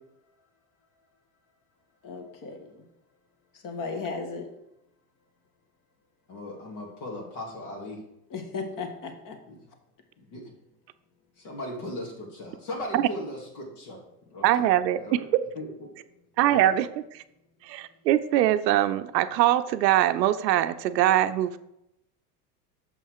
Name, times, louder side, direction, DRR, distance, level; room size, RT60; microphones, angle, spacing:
voice 1, 2.0-2.8 3.6-4.5 8.3-9.4, left 4 dB, 40° left, 5 dB, 1.7 m, -35 dB
voice 2, 6.3-8.0 9.5-9.6 10.2-10.4 11.4-14.0 14.3-14.7 15.0-15.3 15.5-15.9 16.4-16.6, left 1 dB, 60° left, -2 dB, 2.5 m, -38 dB
voice 3, 14.4-15.2 16.4-17.2 17.6-21.6, right 13 dB, 85° right, 11 dB, 0.6 m, -23 dB
6.9 x 5.6 x 4.8 m, 0.82 s
hypercardioid pair, 95°, 49 cm